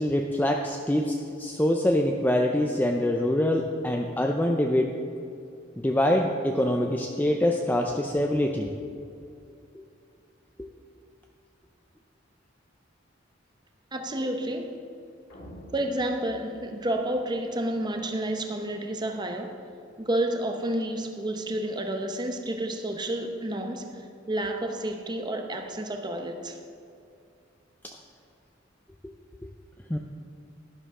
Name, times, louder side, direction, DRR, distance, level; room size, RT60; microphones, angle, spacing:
voice 1, 0.0-4.9 5.8-8.7 10.6-10.7 27.8-27.9 29.9-30.0, left 1 dB, 10° left, 1 dB, 0.5 m, -25 dB
voice 2, 13.9-14.7 15.7-19.6 20.0-24.0 24.3-26.6, right 1 dB, 20° right, 4 dB, 0.7 m, -30 dB
sound 1, 15.3-17.8, equal, 70° left, 2.6 m, -48 dB
12.5 x 10.5 x 3.7 m, 2.5 s
head